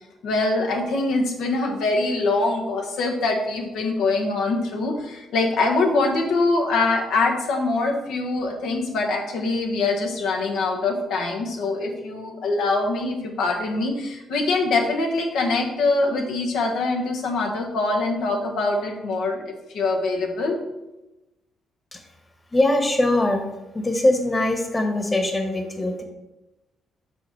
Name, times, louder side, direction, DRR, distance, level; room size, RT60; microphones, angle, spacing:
voice 1, 0.2-19.4 19.7-20.6, left 3 dB, 80° left, 1 dB, 1.3 m, -23 dB
voice 2, 22.5-23.4 23.7-26.0, left 1 dB, 20° left, 4 dB, 1.2 m, -22 dB
5.8 x 3.8 x 5.8 m, 0.98 s
cardioid pair, 90°, 0 cm